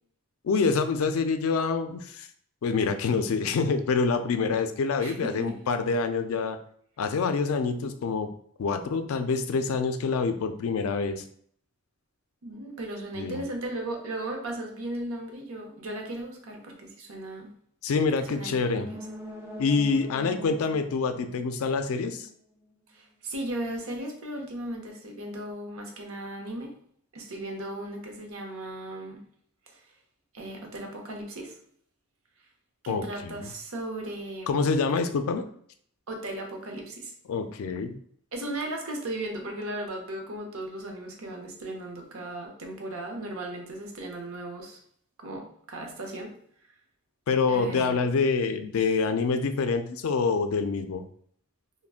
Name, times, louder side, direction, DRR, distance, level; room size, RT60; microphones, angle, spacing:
voice 1, 0.4-2.3 2.6-6.6 7.0-8.3 8.6-11.2 13.2-13.4 17.8-18.9 19.6-22.3 32.9-33.5 34.5-35.4 37.3-38.0 47.3-51.0, left 4 dB, 75° left, 8 dB, 0.3 m, -26 dB
voice 2, 5.0-5.6 12.4-17.5 18.2-19.0 22.9-26.7 27.1-29.2 29.7-29.8 30.3-31.5 32.8-34.7 36.1-37.1 38.3-44.8 45.2-46.3 47.5-48.0, right 1 dB, 75° right, 2 dB, 0.7 m, -36 dB
sound 1, 18.6-22.3 22.6-22.7, left 1 dB, 10° right, 0.4 m, -43 dB
3.5 x 2.1 x 2.4 m, 0.62 s
head